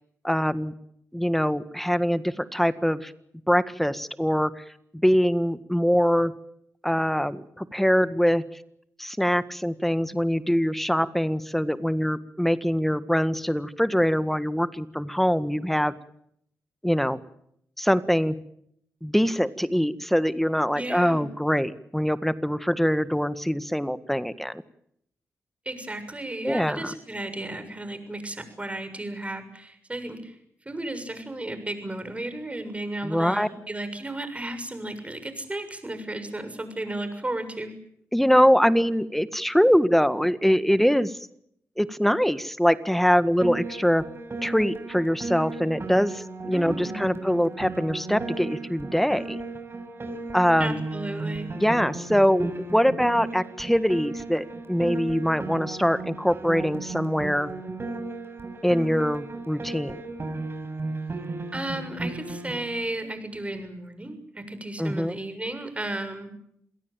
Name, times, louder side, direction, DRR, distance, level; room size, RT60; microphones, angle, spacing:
voice 1, 0.2-0.7 1.1-3.1 3.5-4.6 4.9-6.3 6.8-8.4 9.0-15.9 16.8-17.2 17.8-18.3 19.0-24.6 26.4-26.9 33.0-33.5 38.1-41.2 41.8-44.0 44.4-49.4 50.3-50.8 51.6-57.5 58.6-60.0 64.8-65.1, equal, 5° left, 13 dB, 1.7 m, -23 dB
voice 2, 20.7-21.3 25.7-30.4 30.7-37.7 46.5-47.1 50.6-51.5 61.5-66.3, right 1 dB, 20° right, 10 dB, 7.0 m, -34 dB
Piano, 43.4-62.6, right 3 dB, 45° right, 7.2 m, -35 dB
28.0 x 17.5 x 9.2 m, 0.73 s
supercardioid pair, 45°, 6 cm